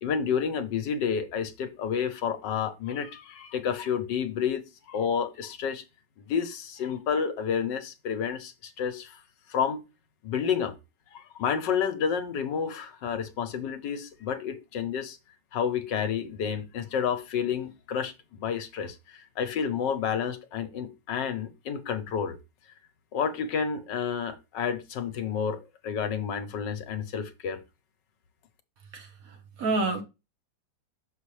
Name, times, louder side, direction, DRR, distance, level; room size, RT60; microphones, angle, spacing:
voice 1, 0.0-5.8 6.2-9.2 9.5-9.8 10.2-10.7 11.1-15.2 15.5-22.4 23.1-27.6, left 7 dB, 75° left, 1.5 m, -30 dB
voice 2, 28.9-30.0, right 3 dB, 55° right, 1.3 m, -29 dB
6.5 x 5.8 x 3.2 m
omnidirectional pair, 1.9 m